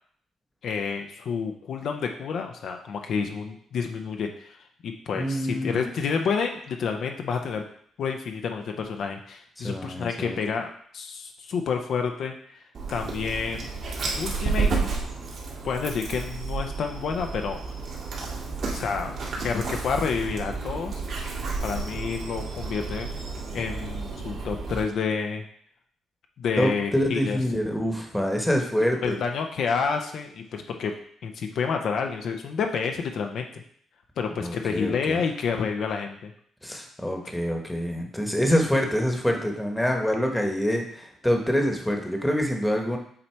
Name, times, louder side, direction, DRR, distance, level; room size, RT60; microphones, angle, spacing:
voice 1, 0.6-4.6 4.8-7.6 8.0-12.6 12.9-13.7 14.1-14.7 15.6-17.6 18.7-19.1 19.4-21.0 21.6-23.1 23.5-25.4 26.4-27.4 29.0-30.9 31.2-33.6 34.2-36.3, left 5 dB, 65° left, 4 dB, 0.6 m, -29 dB
voice 2, 5.2-5.9 9.6-10.4 26.6-29.2 34.4-35.2 36.6-43.0, equal, 5° left, 2 dB, 1.1 m, -26 dB
Dog, 12.7-24.8, right 4 dB, 65° right, 1.9 m, -31 dB
7.5 x 2.9 x 4.5 m, 0.63 s
cardioid pair, 90°, 0 cm